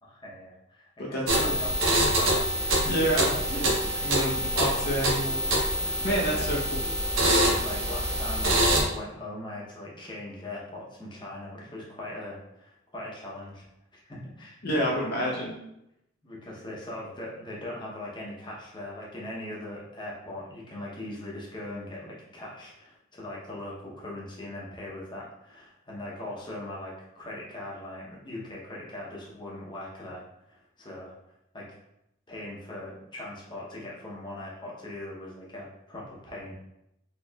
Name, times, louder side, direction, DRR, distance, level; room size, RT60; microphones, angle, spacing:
voice 1, 0.0-2.5 2.8-3.8 5.8-6.5 7.5-13.6 13.9-14.6 14.9-15.0 16.2-31.1 31.5-31.7 32.3-36.6, left 1 dB, 25° left, -5 dB, 0.8 m, -40 dB
voice 2, 1.0-1.6 2.9-3.3 3.6-3.7 4.0-5.4 6.0-6.9 14.6-15.6, equal, 50° left, -3 dB, 0.6 m, -28 dB
sound 1, 1.3-8.8, right 1 dB, 85° right, 0.9 m, -25 dB
4.3 x 2.9 x 2.3 m, 0.83 s
head